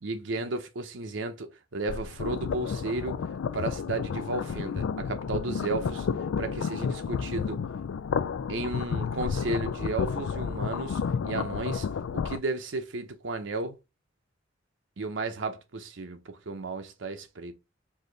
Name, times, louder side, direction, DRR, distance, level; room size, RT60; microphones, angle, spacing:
voice 1, 0.0-3.2 3.5-6.1 6.4-7.6 8.5-11.9 12.1-13.8 15.0-17.5, right 2 dB, 70° right, 0.7 m, -33 dB
sound 1, 1.9-12.4, left 6 dB, 90° left, 0.4 m, -31 dB
4.8 x 2.7 x 3.9 m
head